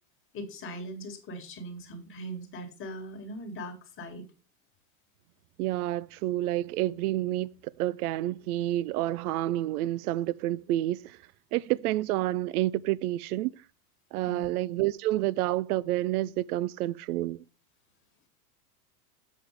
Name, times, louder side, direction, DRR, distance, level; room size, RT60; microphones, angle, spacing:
voice 1, 0.3-4.2 14.2-14.5, right 1 dB, 25° left, 1.9 m, -40 dB
voice 2, 5.6-7.5 7.8-11.2 11.5-13.6 14.1-17.4, right 15 dB, 75° right, 0.6 m, -29 dB
8.0 x 7.2 x 3.2 m
supercardioid pair, 145°, 46 cm